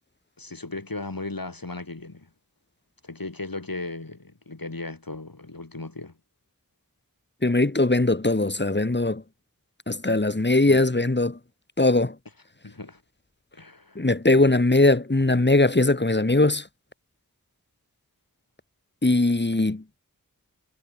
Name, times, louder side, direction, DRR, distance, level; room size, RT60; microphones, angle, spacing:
voice 1, 0.4-2.3 3.0-6.2 10.1-10.2 10.7-10.9 12.6-13.0 13.5-14.1, left 2 dB, 85° left, 7.6 m, -36 dB
voice 2, 7.4-9.2 9.9-11.4 11.8-12.1 13.9-16.6 19.0-19.8, left 2 dB, 30° left, 1.5 m, -20 dB
wide cardioid pair, 40°, 34 cm